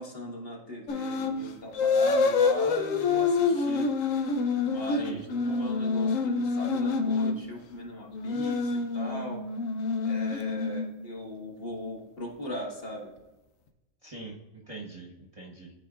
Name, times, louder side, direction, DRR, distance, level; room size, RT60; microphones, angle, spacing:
voice 1, 0.0-3.9 4.6-9.5 10.0-13.1, equal, 45° left, -2 dB, 1.7 m, -38 dB
sound 1, 0.9-1.4 1.7-7.4 8.1-11.1, left 4 dB, 85° left, 1.1 m, -27 dB
voice 2, 4.9-5.2 14.0-15.7, right 3 dB, 30° right, -2 dB, 0.9 m, -43 dB
12.0 x 4.1 x 2.4 m, 1.1 s
omnidirectional pair, 1.4 m